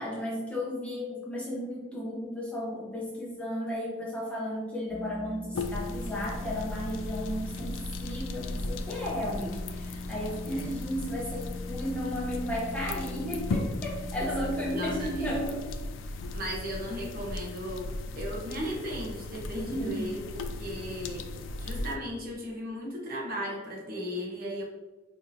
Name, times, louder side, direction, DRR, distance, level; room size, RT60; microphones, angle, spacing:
voice 1, 0.0-15.7 19.5-20.1, equal, 5° left, -6 dB, 0.7 m, -34 dB
sound 1, 4.9-15.2, left 2 dB, 20° left, 1.0 m, -42 dB
sound 2, 5.5-22.0, left 2 dB, 70° left, 0.3 m, -37 dB
voice 2, 10.4-10.8 14.7-15.4 16.3-17.9 18.1-21.2 21.6-24.6, equal, 45° right, -2 dB, 0.8 m, -36 dB
4.6 x 2.8 x 2.6 m, 1.2 s
head